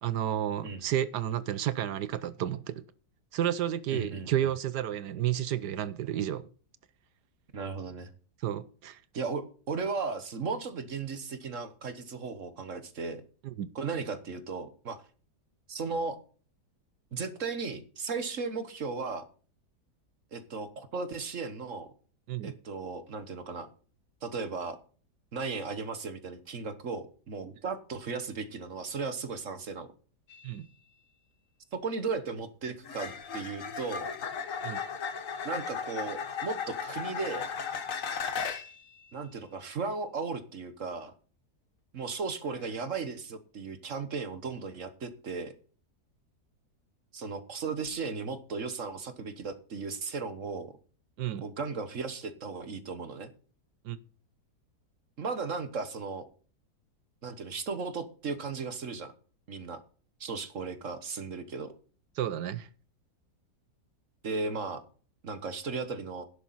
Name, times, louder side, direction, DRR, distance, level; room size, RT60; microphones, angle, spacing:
voice 1, 0.0-2.8 3.3-6.4 8.4-9.0 13.4-13.7 22.3-22.5 30.4-30.7 34.6-34.8 51.2-51.4 53.8-54.0 62.2-62.7, right 11 dB, 75° right, 1.3 m, -31 dB
voice 2, 3.9-4.5 7.5-8.1 9.1-13.2 13.7-15.0 15.7-16.2 17.1-19.3 20.3-21.9 22.4-23.7 24.2-24.8 25.3-29.9 31.7-34.1 35.4-37.5 39.1-41.1 41.9-45.5 47.1-50.7 51.4-53.3 55.2-56.3 57.2-59.1 59.5-59.8 60.2-61.7 64.2-64.8 65.2-66.2, right 4 dB, 50° right, 1.5 m, -36 dB
sound 1, 30.3-30.5 32.8-38.8 42.5-42.7, left 6 dB, 55° left, 1.4 m, -36 dB
12.0 x 10.5 x 4.1 m
omnidirectional pair, 1.8 m